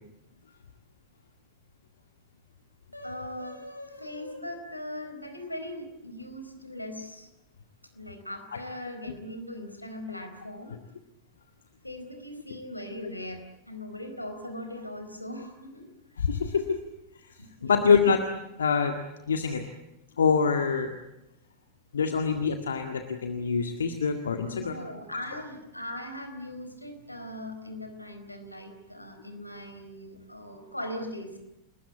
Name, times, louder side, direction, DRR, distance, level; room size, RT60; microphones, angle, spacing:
voice 1, 2.9-7.3 7.9-10.7 11.8-15.8 17.4-17.8 24.4-31.4, left 1 dB, 85° left, 7 dB, 4.3 m, -40 dB
voice 2, 16.2-16.8 17.2-17.3 17.6-18.2 18.6-19.0 19.3-19.6 20.2-20.9 21.9-24.7, left 5 dB, 70° left, 5 dB, 1.9 m, -25 dB
30.0 x 20.5 x 8.4 m, 0.93 s
figure-of-eight pair, 90°, 0 cm